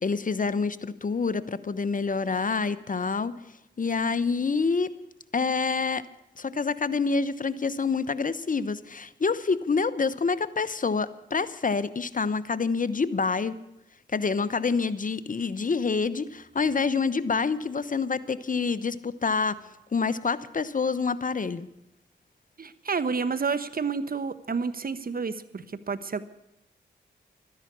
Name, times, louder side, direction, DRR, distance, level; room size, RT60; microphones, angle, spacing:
voice 1, 0.0-3.3 3.8-4.9 5.3-6.0 6.4-13.6 14.1-19.6 19.9-21.7, left 4 dB, 45° left, 15 dB, 1.0 m, -27 dB
voice 2, 22.6-26.2, right 5 dB, 50° right, 14 dB, 1.1 m, -30 dB
13.0 x 11.0 x 8.6 m, 0.87 s
cardioid pair, 40°, 19 cm